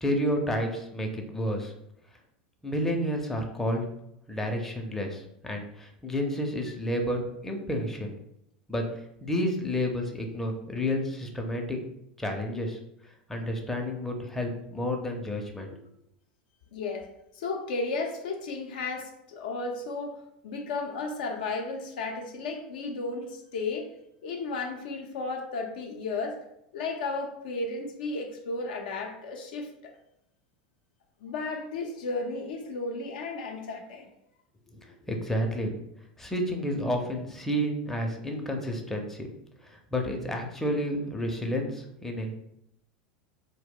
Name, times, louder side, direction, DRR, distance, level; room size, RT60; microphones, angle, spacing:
voice 1, 0.0-1.7 2.6-3.8 4.3-7.2 7.4-8.1 8.7-8.8 9.2-11.8 12.2-12.8 13.3-15.7 34.7-35.7 36.2-39.3 39.6-42.3, equal, 5° left, 2 dB, 0.5 m, -30 dB
voice 2, 16.7-17.1 17.3-23.9 24.2-26.4 26.7-29.9 31.2-34.1, left 3 dB, 70° left, 3 dB, 0.4 m, -34 dB
2.2 x 2.1 x 3.6 m, 0.78 s
hypercardioid pair, 90°, 5 cm